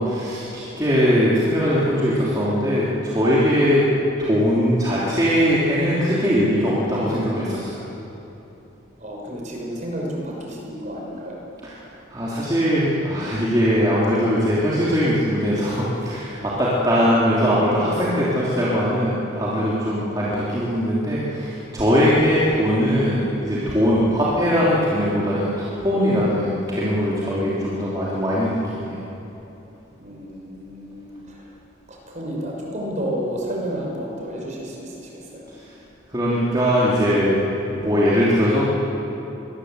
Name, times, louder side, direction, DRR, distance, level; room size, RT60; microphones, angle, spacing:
voice 1, 0.0-3.9 4.2-7.9 12.1-29.0 36.1-37.4 37.7-38.6, equal, 20° right, -8 dB, 3.2 m, -20 dB
voice 2, 9.0-11.4 30.0-31.5 31.9-35.5, equal, 35° right, -2 dB, 5.9 m, -31 dB
23.5 x 20.0 x 8.2 m, 3.0 s
head